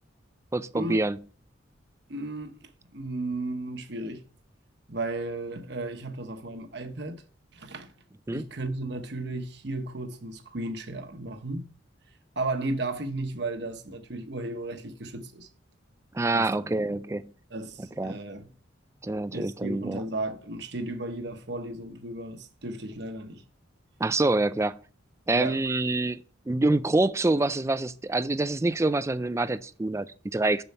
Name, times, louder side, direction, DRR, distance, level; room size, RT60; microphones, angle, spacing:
voice 1, 0.5-1.2 8.3-8.4 16.1-17.3 18.0-18.2 19.0-20.0 24.0-24.8 25.3-30.6, right 2 dB, 15° right, 0.3 m, -26 dB
voice 2, 2.1-4.2 4.9-7.2 7.5-7.9 8.3-11.7 12.4-15.5 16.3-17.0 17.5-18.5 19.3-23.4 25.3-25.6, right 2 dB, 60° right, 1.1 m, -34 dB
7.0 x 7.0 x 4.3 m
head